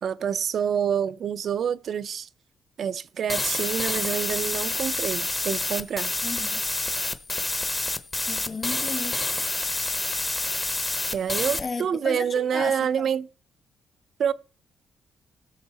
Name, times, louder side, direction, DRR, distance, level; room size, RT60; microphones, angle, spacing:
voice 1, 0.0-2.3 2.8-6.1 11.1-13.3 14.2-14.3, right 8 dB, 60° right, 0.5 m, -27 dB
sound 1, 3.3-11.6, left 2 dB, 20° left, 0.9 m, -28 dB
voice 2, 6.2-6.6 8.3-9.2 11.6-13.1, left 4 dB, 40° left, 1.6 m, -34 dB
16.5 x 6.3 x 4.2 m
cardioid pair, 95°, 0 cm